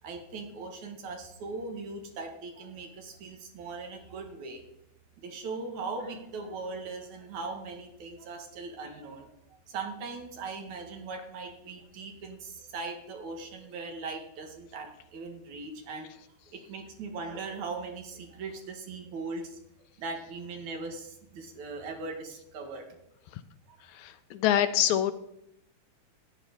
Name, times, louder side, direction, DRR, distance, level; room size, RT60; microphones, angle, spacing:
voice 1, 0.0-4.6 5.2-9.3 9.7-16.1 16.5-19.6 20.0-22.9 23.7-23.8, right 3 dB, 75° right, 3 dB, 3.0 m, -39 dB
voice 2, 23.9-25.1, left 11 dB, 80° left, 10 dB, 1.9 m, -25 dB
14.0 x 10.5 x 4.0 m, 0.77 s
omnidirectional pair, 3.4 m